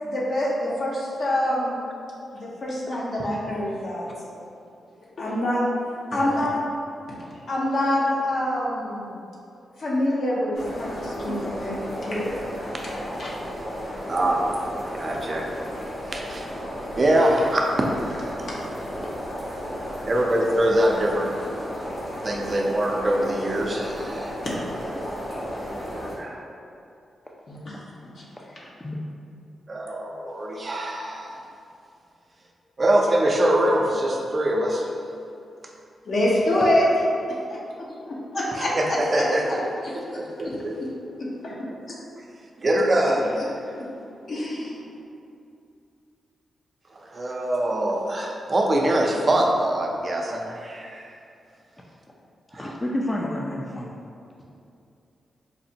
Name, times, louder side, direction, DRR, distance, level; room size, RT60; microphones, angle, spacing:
voice 1, 0.0-1.8 2.3-4.4 5.2-5.6 6.1-6.6 7.5-9.2 9.8-11.7 12.0-12.4 12.8-12.9 13.2-13.3 15.1-15.4 18.4-18.6 24.4-24.5 27.5-27.8 36.0-36.9 37.5-39.6 39.8-40.5 41.2-41.7 42.7-42.8 43.0-43.1 43.7-43.8 44.3-44.8, left 1 dB, 65° left, -5 dB, 0.8 m, -26 dB
voice 2, 3.1-3.4 28.3-28.4 28.8-28.9 52.5-53.9, left 1 dB, 30° left, -2 dB, 0.4 m, -30 dB
sound 1, 10.5-26.1, equal, 80° left, 1.2 m, -33 dB
voice 3, 14.1-14.4 14.9-15.4 16.1-16.5 16.9-17.9 20.0-21.3 22.2-24.3 26.2-26.5 29.7-31.4 32.8-34.9 38.6-39.6 40.2-40.7 42.6-43.4 46.9-51.1 52.5-52.7, right 1 dB, 45° right, 0 dB, 0.5 m, -23 dB
4.0 x 2.1 x 2.7 m, 2.6 s
supercardioid pair, 45°, 0 cm